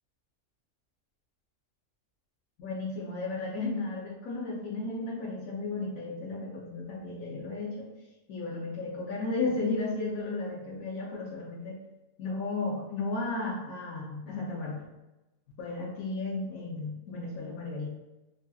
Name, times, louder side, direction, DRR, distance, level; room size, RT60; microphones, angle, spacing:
voice 1, 2.6-7.9 8.3-11.8 12.2-14.9 15.6-17.9, left 3 dB, 85° left, -5 dB, 1.1 m, -34 dB
3.1 x 2.7 x 2.2 m, 1.0 s
omnidirectional pair, 1.4 m